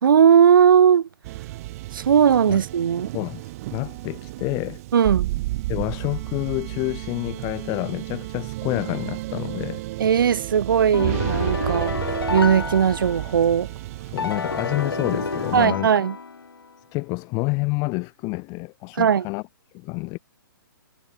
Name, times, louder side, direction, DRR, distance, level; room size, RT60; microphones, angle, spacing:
voice 1, 0.0-1.1 1.9-3.1 4.9-5.3 10.0-12.0 12.3-13.7 15.5-16.1 19.0-19.2, right 8 dB, 65° right, 3.4 m, -18 dB
sound 1, 1.2-15.7, right 18 dB, 40° right, 1.8 m, -32 dB
voice 2, 3.1-4.8 5.7-9.8 14.1-15.9 16.9-19.4 19.7-20.2, left 28 dB, 30° left, 1.6 m, -28 dB
sound 2, 10.9-13.6 14.2-16.7, left 5 dB, 85° left, 3.8 m, -29 dB
hypercardioid pair, 130°, 12 cm